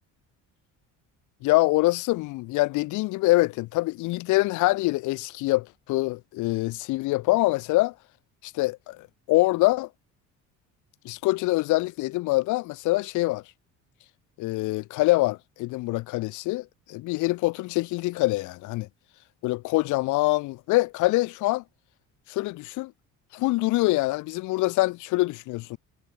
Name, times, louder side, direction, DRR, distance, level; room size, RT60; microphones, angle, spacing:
voice 1, 1.4-7.9 8.4-9.9 11.0-13.4 14.4-18.9 19.4-21.6 22.3-22.9 23.3-25.8, left 20 dB, 65° left, 0.5 m, -25 dB
cardioid pair, 150°, 33 cm